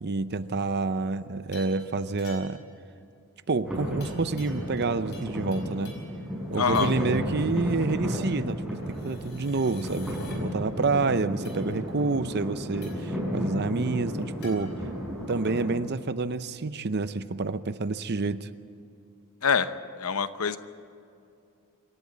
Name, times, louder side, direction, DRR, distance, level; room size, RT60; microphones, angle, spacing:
voice 1, 0.0-2.6 3.5-5.9 6.5-14.7 15.3-18.5, right 3 dB, 50° right, 13 dB, 0.6 m, -28 dB
sound 1, 1.5-1.8 2.2-2.7 4.0-4.9 5.1-6.1 6.7-7.1 8.8-10.4 11.4-11.6 12.8-13.1 14.4-14.6, left 4 dB, 50° left, 4.9 m, -49 dB
sound 2, 3.6-15.7, equal, 5° right, 6.6 m, -33 dB
voice 2, 6.6-6.9 19.4-19.7 20.0-20.6, left 6 dB, 75° left, 12 dB, 0.9 m, -24 dB
26.0 x 12.0 x 8.5 m, 2.5 s
head